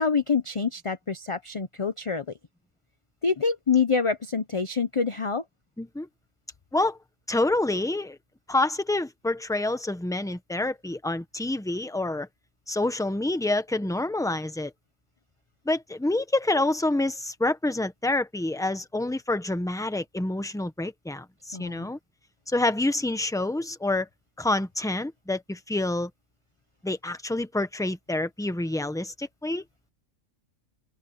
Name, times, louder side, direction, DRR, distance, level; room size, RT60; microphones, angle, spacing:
voice 1, 0.0-2.2 3.2-5.4 21.5-21.9, left 5 dB, 30° left, 0.7 m, -26 dB
voice 2, 5.8-6.1 6.7-7.0 7.3-8.2 8.5-12.3 12.7-14.7 15.6-22.0 22.5-24.1 24.4-26.1 26.8-29.6, left 2 dB, 5° left, 1.1 m, -27 dB
open air
omnidirectional pair, 1.3 m